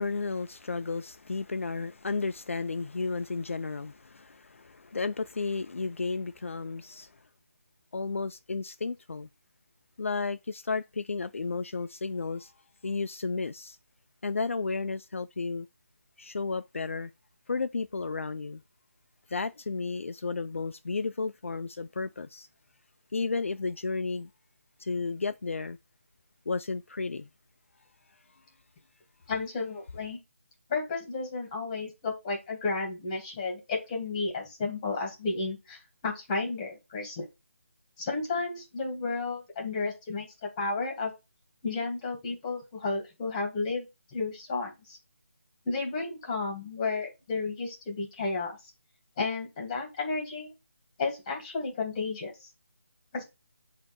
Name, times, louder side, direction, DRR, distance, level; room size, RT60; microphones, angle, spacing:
voice 1, 0.0-7.1 7.9-9.3 10.0-12.5 12.8-13.8 14.2-15.7 16.2-17.1 17.5-18.6 19.3-22.5 23.1-24.3 24.8-25.8 26.5-27.3, left 4 dB, 70° left, 0.4 m, -33 dB
voice 2, 29.3-30.2 30.7-37.3 38.0-41.1 41.6-43.9 44.1-45.0 45.7-48.6 49.2-50.5 51.0-52.5 53.1-53.2, left 3 dB, 20° left, 2.0 m, -32 dB
7.8 x 2.9 x 4.3 m
figure-of-eight pair, 155°, 7 cm